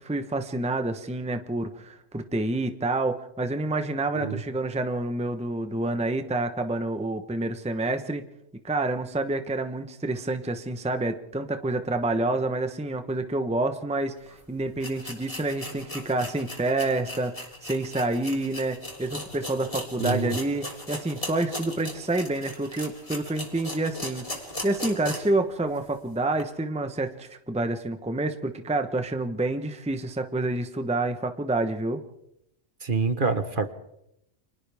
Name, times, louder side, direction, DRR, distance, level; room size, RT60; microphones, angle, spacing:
voice 1, 0.0-8.2 8.6-32.0, right 2 dB, 5° right, 8 dB, 0.9 m, -28 dB
sound 1, 14.3-14.4 14.8-25.4 25.8-25.9 26.4-26.5, left 1 dB, 25° left, 3.4 m, -38 dB
voice 2, 20.0-20.4 32.8-33.7, right 4 dB, 45° right, 9 dB, 1.4 m, -26 dB
30.0 x 25.0 x 3.5 m, 0.80 s
omnidirectional pair, 1.3 m